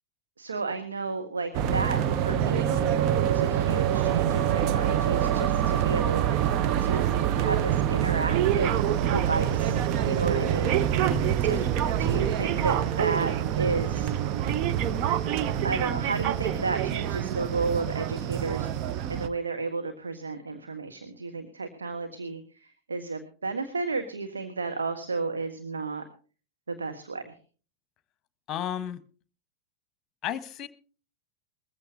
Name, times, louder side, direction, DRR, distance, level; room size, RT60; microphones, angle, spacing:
voice 1, 0.4-7.1 7.4-11.1 11.4-11.7 12.0-14.1 15.6-26.0 26.7-27.3, right 4 dB, 75° right, 6 dB, 1.4 m, -32 dB
sound 1, 1.5-19.3, right 10 dB, 40° right, 0.7 m, -26 dB
voice 2, 28.5-29.0 30.2-30.7, left 10 dB, 30° left, 14 dB, 1.2 m, -33 dB
21.0 x 15.0 x 2.8 m, 0.38 s
figure-of-eight pair, 90°, 0 cm